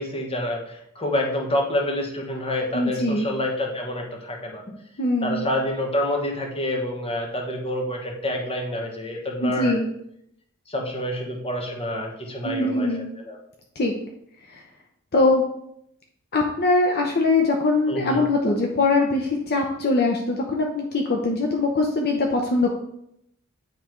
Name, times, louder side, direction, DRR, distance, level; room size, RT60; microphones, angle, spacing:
voice 1, 0.0-4.6 5.2-9.8 10.7-13.0 13.2-13.4 17.9-18.2, left 1 dB, 25° left, 1 dB, 1.2 m, -27 dB
voice 2, 2.7-3.3 5.0-5.4 9.4-9.9 12.4-13.1 13.8-13.9 14.5-14.6 15.1-15.4 16.3-22.7, left 2 dB, 45° left, 1 dB, 0.8 m, -22 dB
9.6 x 3.4 x 4.6 m, 0.76 s
head